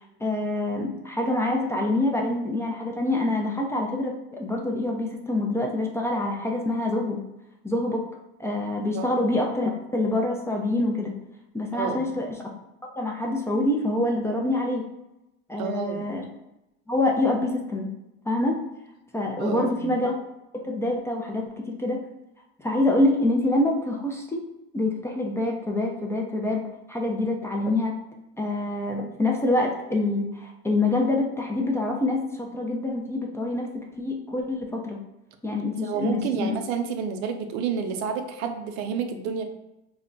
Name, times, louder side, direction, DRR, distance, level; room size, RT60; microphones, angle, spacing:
voice 1, 0.2-7.2 7.6-8.0 8.4-11.1 11.5-12.3 13.0-14.8 15.5-16.3 16.9-17.9 18.3-18.6 19.1-20.1 20.6-21.4 21.8-22.0 22.6-24.4 24.7-26.6 26.9-27.9 28.4-35.0 35.4-36.6, left 2 dB, 10° left, 0 dB, 0.3 m, -26 dB
voice 2, 11.7-12.1 15.6-16.1 19.4-20.0 35.5-39.4, right 6 dB, 80° right, 6 dB, 0.5 m, -30 dB
2.2 x 2.1 x 3.7 m, 0.92 s
supercardioid pair, 105°, 30 cm